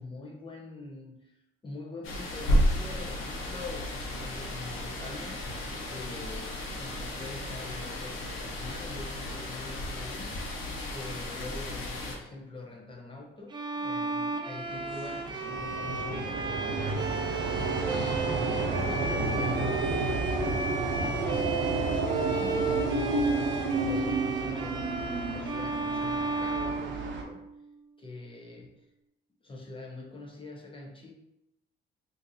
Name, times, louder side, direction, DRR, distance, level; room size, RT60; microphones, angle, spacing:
voice 1, 0.0-1.4 1.6-10.4 10.9-17.4 17.9-20.7 21.2-25.0 25.3-27.4 28.0-28.9 29.4-31.1, left 2 dB, 25° left, 0 dB, 0.7 m, -44 dB
sound 1, 2.0-12.2, equal, 85° left, 0.8 m, -33 dB
Bowed string instrument, 13.5-27.6, right 3 dB, 25° right, 0.5 m, -34 dB
sound 2, 14.7-27.2, right 3 dB, 75° right, 0.6 m, -31 dB
3.8 x 2.6 x 2.7 m, 0.83 s
cardioid pair, 90°, 20 cm